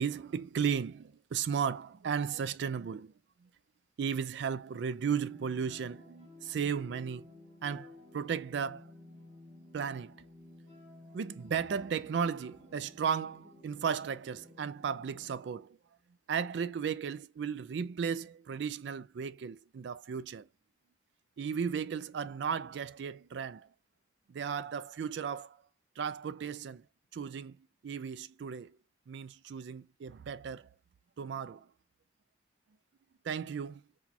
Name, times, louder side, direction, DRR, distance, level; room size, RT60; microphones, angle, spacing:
voice 1, 0.0-3.1 4.0-7.3 7.6-8.9 9.7-10.1 11.1-15.8 16.3-20.5 21.4-23.7 24.3-25.6 26.0-26.8 27.1-27.6 27.8-28.8 29.1-30.7 31.2-31.7 33.2-33.8, right 7 dB, 70° right, 0.3 m, -35 dB
sound 1, 5.0-15.3, left 2 dB, 20° left, 3.1 m, -54 dB
5.9 x 2.3 x 2.8 m
head